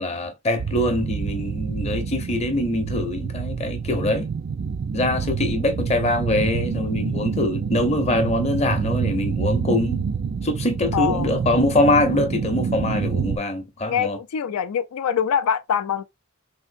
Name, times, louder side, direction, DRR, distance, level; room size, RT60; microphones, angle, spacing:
voice 1, 0.0-4.3 4.9-10.1 10.4-14.2, left 1 dB, 30° left, 0.7 m, -23 dB
sound 1, 0.6-13.4, right 6 dB, 45° right, 0.3 m, -27 dB
voice 2, 10.9-11.3 13.8-16.0, left 8 dB, 85° left, 0.4 m, -24 dB
3.6 x 2.5 x 2.5 m
head